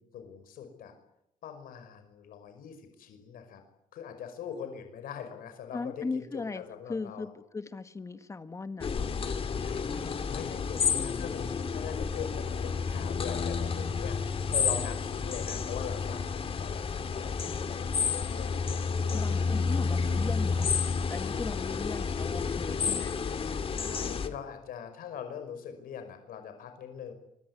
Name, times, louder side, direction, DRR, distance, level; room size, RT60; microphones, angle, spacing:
voice 1, 0.1-0.9 1.4-3.6 3.9-7.3 9.6-19.4 23.7-27.1, left 8 dB, 85° left, 7 dB, 5.5 m, -42 dB
voice 2, 5.7-9.1 10.7-11.4 19.1-20.7 21.1-23.2, left 3 dB, 20° left, 10 dB, 1.8 m, -38 dB
sound 1, 8.8-24.3, left 5 dB, 40° left, 2.5 m, -30 dB
25.0 x 23.0 x 9.7 m, 0.81 s
cardioid pair, 145°, 14 cm